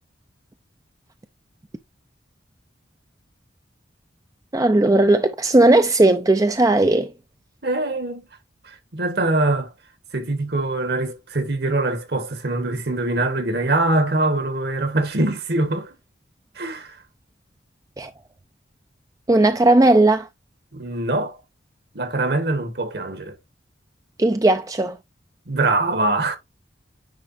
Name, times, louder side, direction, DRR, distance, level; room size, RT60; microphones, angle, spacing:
voice 1, 4.5-7.1 18.0-18.1 19.3-20.3 24.2-25.0, right 2 dB, 20° right, 0.4 m, -16 dB
voice 2, 7.6-8.2 8.6-9.7 10.1-15.9 16.5-17.0 20.7-21.4 21.9-23.4 25.5-26.4, right 2 dB, 55° right, 1.5 m, -23 dB
9.5 x 5.2 x 2.6 m
head